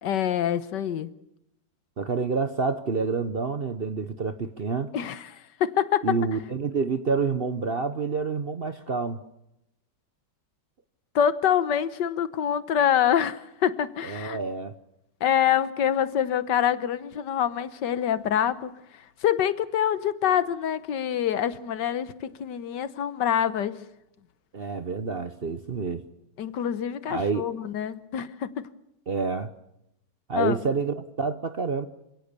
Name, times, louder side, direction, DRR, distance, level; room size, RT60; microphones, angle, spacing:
voice 1, 0.0-1.1 4.9-6.1 11.1-14.4 15.2-18.7 19.2-23.8 26.4-28.5 30.3-30.6, left 9 dB, 80° left, 15 dB, 1.6 m, -25 dB
voice 2, 2.0-4.9 6.0-9.2 14.0-14.7 24.5-26.0 27.1-27.5 29.1-29.5 30.3-31.9, right 4 dB, 45° right, 11 dB, 0.9 m, -28 dB
27.0 x 17.0 x 6.8 m, 0.83 s
omnidirectional pair, 1.9 m